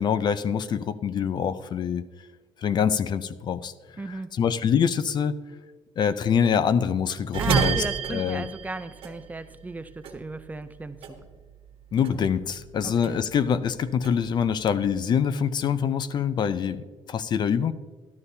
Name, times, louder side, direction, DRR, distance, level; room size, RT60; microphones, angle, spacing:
voice 1, 0.0-2.0 2.6-5.3 6.0-7.8 8.1-8.5 11.9-17.7, left 7 dB, 45° left, 14 dB, 0.5 m, -25 dB
voice 2, 4.0-4.3 7.4-11.0 12.8-13.2, right 3 dB, 15° right, 11 dB, 0.5 m, -35 dB
sound 1, 7.3-9.8 10.0-11.7 12.0-13.5 13.8-15.0, right 6 dB, 70° right, 1.5 m, -30 dB
13.0 x 12.0 x 2.7 m, 1.4 s
cardioid pair, 120°, 10 cm